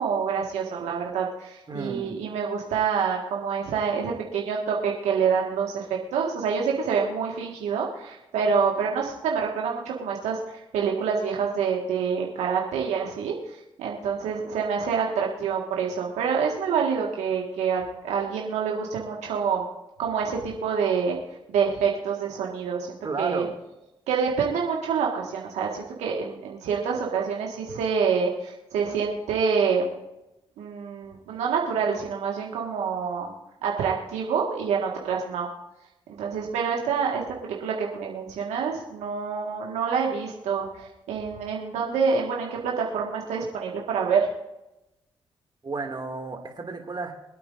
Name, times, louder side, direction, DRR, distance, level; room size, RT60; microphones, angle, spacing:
voice 1, 0.0-5.9 6.1-13.3 13.8-19.6 20.0-21.2 21.5-23.5 24.1-29.9 30.6-33.3 33.6-35.5 36.2-44.3, right 6 dB, 80° right, -1 dB, 1.7 m, -27 dB
voice 2, 1.7-2.2 23.0-23.5 45.6-47.1, right 3 dB, 40° right, 3 dB, 2.4 m, -32 dB
25.5 x 8.6 x 2.6 m, 0.92 s
hypercardioid pair, 40°, 12 cm